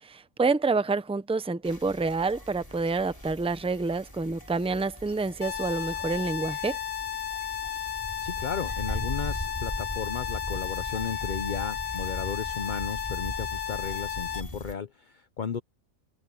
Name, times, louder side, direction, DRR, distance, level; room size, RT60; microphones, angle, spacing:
voice 1, 0.0-6.8, right 3 dB, 10° right, 0.4 m, -28 dB
sound 1, 1.6-14.7, equal, 15° left, 5.3 m, -39 dB
sound 2, 5.4-14.4, left 10 dB, 70° left, 1.6 m, -34 dB
voice 2, 8.2-15.6, left 6 dB, 45° left, 0.7 m, -34 dB
open air
omnidirectional pair, 1.5 m